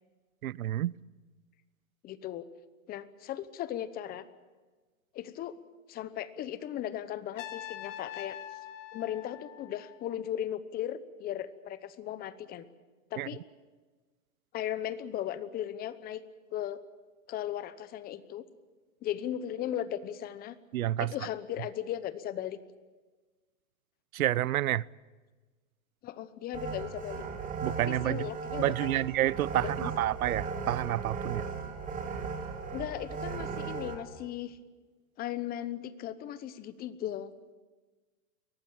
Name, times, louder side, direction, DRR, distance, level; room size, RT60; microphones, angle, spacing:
voice 1, 0.4-0.9 13.2-13.3 20.7-21.1 24.1-24.8 27.6-28.3 28.6-31.5, right 14 dB, 90° right, 0.7 m, -29 dB
voice 2, 2.0-2.5 2.9-4.2 5.1-5.5 5.9-8.4 8.9-12.7 13.1-13.4 14.5-16.2 16.5-16.8 17.3-18.4 19.0-20.6 21.0-22.6 26.0-27.2 27.8-28.9 29.6-29.9 32.7-34.6 35.2-37.3, left 11 dB, 20° left, 0.9 m, -37 dB
Trumpet, 7.3-10.3, left 11 dB, 65° left, 2.4 m, -44 dB
sound 1, 26.5-33.9, right 5 dB, 20° right, 3.0 m, -37 dB
23.0 x 18.5 x 9.0 m
hypercardioid pair, 145°, 41 cm